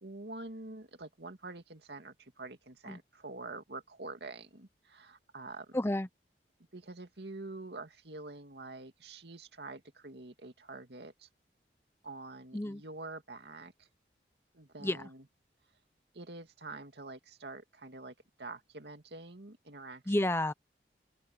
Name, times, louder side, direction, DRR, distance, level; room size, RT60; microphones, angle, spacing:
voice 1, 0.0-5.8 6.7-11.3 12.0-13.9 14.5-15.3 16.1-20.3, right 2 dB, 75° right, 2.3 m, -46 dB
voice 2, 5.7-6.1 12.5-12.8 14.8-15.0 20.1-20.5, left 1 dB, 15° left, 0.7 m, -30 dB
open air
head